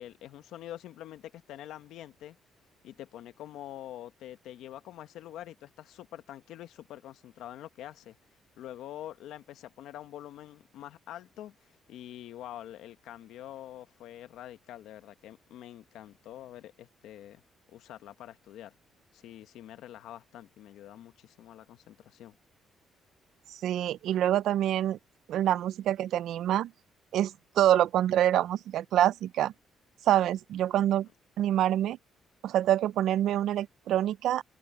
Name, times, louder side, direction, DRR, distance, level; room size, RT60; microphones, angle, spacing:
voice 1, 0.0-2.4 2.8-8.2 8.6-17.4 17.7-18.7 19.1-22.4, left 12 dB, 85° left, 1.2 m, -46 dB
voice 2, 23.5-25.0 25.3-26.7 27.1-29.5 30.1-31.1 31.4-32.0 32.4-34.4, right 12 dB, 80° right, 0.4 m, -26 dB
open air
cardioid pair, 90°, 0 cm